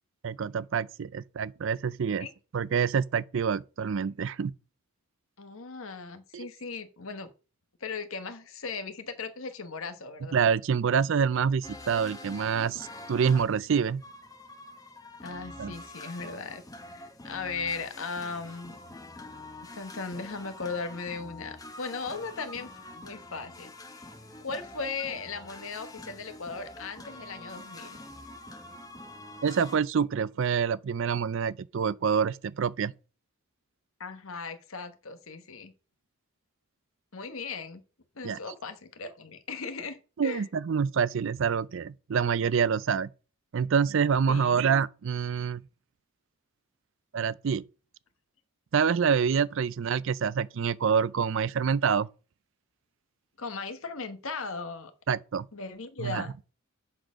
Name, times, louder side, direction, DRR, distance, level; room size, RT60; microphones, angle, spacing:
voice 1, 0.2-2.3 2.5-4.5 6.3-6.5 10.3-14.0 15.6-15.7 29.4-32.9 38.2-38.4 40.2-43.1 43.5-45.6 47.1-47.6 48.7-52.1 55.1-55.5 56.0-56.2, right 6 dB, 55° right, 0.4 m, -26 dB
voice 2, 5.4-7.3 7.8-10.4 15.2-18.8 19.7-23.7 24.4-28.0 34.0-35.7 37.1-37.8 38.1-40.4 44.3-44.6 53.4-54.9 55.5-56.3, left 4 dB, 65° left, 1.1 m, -37 dB
sound 1, 11.6-29.8, left 2 dB, 15° left, 0.9 m, -46 dB
7.7 x 4.3 x 6.0 m
head